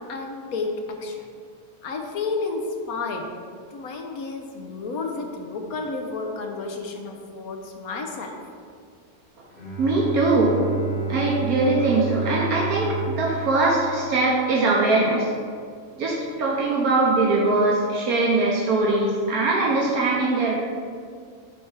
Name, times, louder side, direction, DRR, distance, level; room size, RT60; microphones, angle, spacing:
voice 1, 0.1-0.7 1.0-1.2 1.8-3.3 3.7-8.3, left 4 dB, 75° left, 3 dB, 1.4 m, -31 dB
Bowed string instrument, 9.5-14.8, right 3 dB, 45° left, 1.7 m, -31 dB
voice 2, 9.8-10.6 11.1-15.3 16.0-20.5, right 2 dB, 80° right, -3 dB, 1.4 m, -21 dB
9.8 x 3.5 x 5.7 m, 2.2 s
omnidirectional pair, 1.5 m